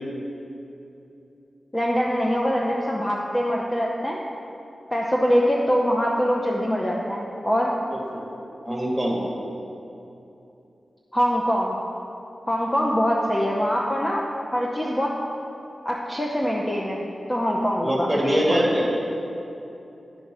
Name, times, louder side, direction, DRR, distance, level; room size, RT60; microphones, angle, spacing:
voice 1, 1.7-4.2 4.9-7.7 11.1-11.8 12.5-14.2 14.5-15.1 15.8-17.0 17.3-18.7, equal, 20° left, -3 dB, 0.7 m, -23 dB
voice 2, 7.9-8.3 8.6-9.2 17.8-18.8, equal, 5° right, -3 dB, 1.8 m, -24 dB
9.5 x 5.2 x 6.0 m, 2.8 s
wide cardioid pair, 100°, 0 cm